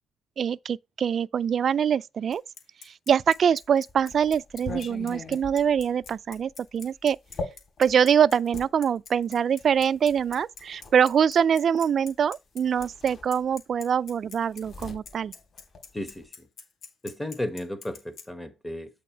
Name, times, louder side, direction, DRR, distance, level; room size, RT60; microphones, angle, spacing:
voice 1, 0.4-2.4 2.8-7.2 7.8-15.3, right 8 dB, 55° right, 0.3 m, -24 dB
Bicycle, 2.3-18.2, left 5 dB, 65° left, 2.0 m, -45 dB
sound 1, 3.4-8.7 9.6-11.0 12.2-12.3 12.6-13.8 14.0-16.3, left 3 dB, 45° left, 4.2 m, -41 dB
voice 2, 17.0-18.9, left 1 dB, 15° left, 1.2 m, -33 dB
8.4 x 4.0 x 4.4 m
cardioid pair, 90°, 0 cm